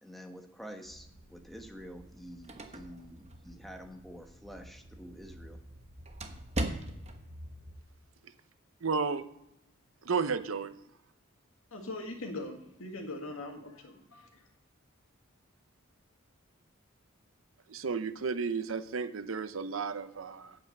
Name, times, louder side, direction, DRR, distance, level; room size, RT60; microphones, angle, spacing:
voice 1, 0.0-5.6, equal, ahead, 4 dB, 1.1 m, -48 dB
sound 1, 0.8-7.7, equal, 50° right, 1.7 m, -52 dB
sound 2, 2.0-7.3, right 1 dB, 30° right, 1.1 m, -41 dB
voice 2, 8.8-9.2 10.0-10.7 17.7-20.6, right 5 dB, 80° right, 11 dB, 0.8 m, -33 dB
voice 3, 11.7-14.5, left 2 dB, 85° left, 3 dB, 1.9 m, -41 dB
8.7 x 8.3 x 6.5 m, 0.85 s
head